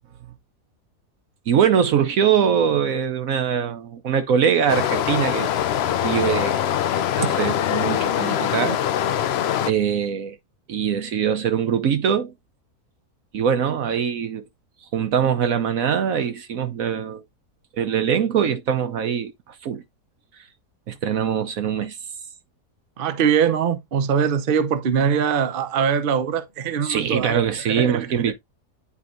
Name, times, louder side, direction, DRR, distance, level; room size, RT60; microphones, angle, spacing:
voice 1, 1.5-5.5 6.0-6.5 7.2-8.8 9.7-10.4 10.7-12.3 13.3-14.4 14.9-17.2 17.7-19.8 20.9-22.0 26.8-28.3, right 8 dB, 65° right, 1.1 m, -22 dB
Stream, 4.7-9.7, left 10 dB, 70° left, 0.6 m, -23 dB
voice 2, 23.0-27.4 27.7-28.3, right 7 dB, 45° right, 0.8 m, -22 dB
9.7 x 4.6 x 2.6 m
omnidirectional pair, 1.7 m